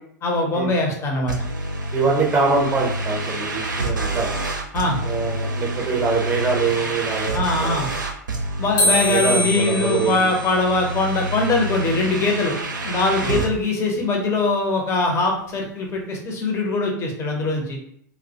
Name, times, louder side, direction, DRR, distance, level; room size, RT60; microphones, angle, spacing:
voice 1, 0.2-1.3 4.7-5.0 7.3-7.9 8.6-12.6 12.8-17.8, left 2 dB, 25° left, 0 dB, 0.6 m, -22 dB
sound 1, 1.3-13.5, right 1 dB, 80° right, 0.4 m, -27 dB
voice 2, 1.9-4.3 5.0-7.8 8.8-10.3 13.2-13.4, right 4 dB, 20° right, -1 dB, 0.6 m, -24 dB
sound 2, 8.8-11.9, left 1 dB, 75° left, 1.0 m, -26 dB
2.2 x 2.0 x 2.7 m, 0.65 s
figure-of-eight pair, 90°, 10 cm